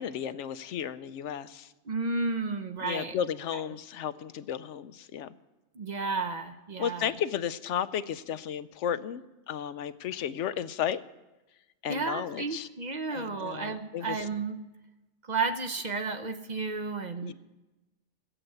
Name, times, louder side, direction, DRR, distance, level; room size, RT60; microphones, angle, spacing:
voice 1, 0.0-1.7 2.8-5.3 6.8-11.0 11.8-12.7 13.1-14.2 17.2-17.3, left 9 dB, 85° left, 14 dB, 0.9 m, -33 dB
voice 2, 1.9-3.2 3.5-3.6 5.8-7.1 11.9-14.6 15.2-17.3, right 4 dB, 45° right, 8 dB, 0.7 m, -32 dB
16.0 x 7.9 x 7.8 m, 1.1 s
omnidirectional pair, 1.2 m